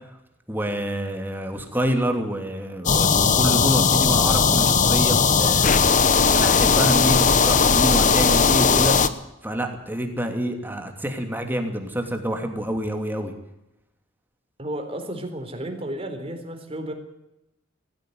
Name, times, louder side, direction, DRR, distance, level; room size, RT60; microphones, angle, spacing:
voice 1, 0.5-5.8 6.3-9.0 9.4-13.3, equal, 10° right, 4 dB, 2.9 m, -27 dB
sound 1, 2.9-9.1, left 5 dB, 40° left, 1.1 m, -18 dB
voice 2, 14.6-16.9, right 1 dB, 30° right, 5 dB, 3.9 m, -32 dB
19.0 x 15.0 x 9.5 m, 0.85 s
head